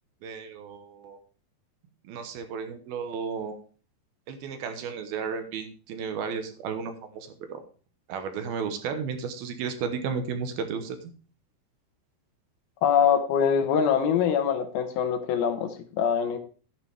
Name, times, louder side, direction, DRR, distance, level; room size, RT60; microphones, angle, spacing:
voice 1, 0.2-1.2 2.0-3.6 4.3-7.6 8.1-11.1, right 6 dB, 75° right, 7 dB, 2.8 m, -33 dB
voice 2, 12.8-16.4, left 7 dB, 75° left, 8 dB, 2.7 m, -24 dB
11.5 x 9.6 x 3.4 m, 0.38 s
omnidirectional pair, 4.7 m